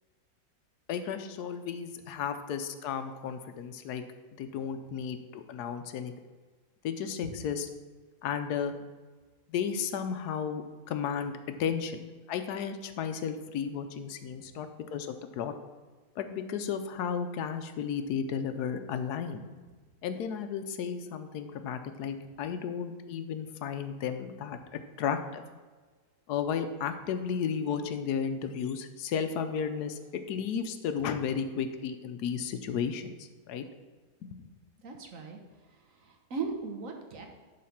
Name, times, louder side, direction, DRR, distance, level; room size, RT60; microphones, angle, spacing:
voice 1, 0.9-4.0 4.4-6.1 6.8-7.7 8.2-8.7 9.5-12.0 12.3-15.5 16.2-19.4 20.0-24.6 25.0-25.4 26.3-33.2 33.5-33.6 34.2-34.4, left 7 dB, 75° left, 8 dB, 1.2 m, -33 dB
voice 2, 34.8-35.4 35.9-37.3, right 5 dB, 55° right, 3 dB, 1.3 m, -38 dB
10.5 x 3.9 x 5.8 m, 1.4 s
omnidirectional pair, 1.7 m